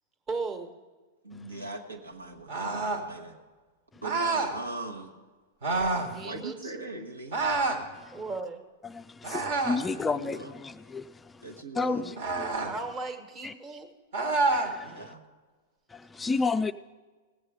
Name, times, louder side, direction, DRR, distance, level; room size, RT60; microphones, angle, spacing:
voice 1, 0.3-0.7 5.9-6.7 8.1-8.7 12.6-13.9 16.1-16.3, right 3 dB, 25° right, 1.3 m, -36 dB
voice 2, 1.2-3.4 4.0-5.1 6.2-7.4 9.9-10.5 11.4-12.3 14.8-15.2, right 2 dB, 80° right, 1.4 m, -40 dB
sound 1, 2.5-3.1 4.0-4.6 5.6-6.1 7.3-7.8 9.2-9.9 12.2-12.7 14.1-14.7, right 3 dB, 60° right, 1.5 m, -28 dB
voice 3, 8.8-11.1 11.8-12.5 13.4-13.5 14.5-14.9 15.9-16.7, left 4 dB, 15° left, 0.3 m, -31 dB
18.5 x 7.8 x 5.0 m
figure-of-eight pair, 95°, 0 cm